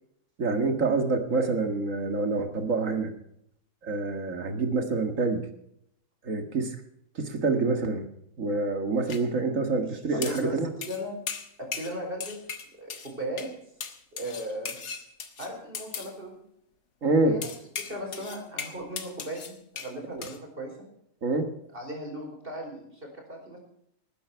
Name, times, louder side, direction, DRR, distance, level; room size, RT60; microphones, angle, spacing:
voice 1, 0.4-3.1 3.8-5.4 6.2-6.8 7.2-8.1 8.4-10.7 17.0-17.4 20.1-20.2 21.2-21.5, right 3 dB, 55° right, 6 dB, 2.2 m, -26 dB
sound 1, 9.1-9.2 10.2-10.5 10.8-11.0 11.3-11.9 12.2-13.1 13.4-13.5 13.8-16.1 17.4-19.9 20.2-20.4, left 6 dB, 85° left, 2.0 m, -38 dB
voice 2, 9.8-10.5 10.8-11.2 11.6-12.4 12.8-13.5 14.1-14.8 15.4-16.4 17.2-17.5 17.8-20.9 21.7-23.6, right 1 dB, 35° right, 1 dB, 4.9 m, -37 dB
19.5 x 10.0 x 4.6 m, 0.72 s
omnidirectional pair, 1.7 m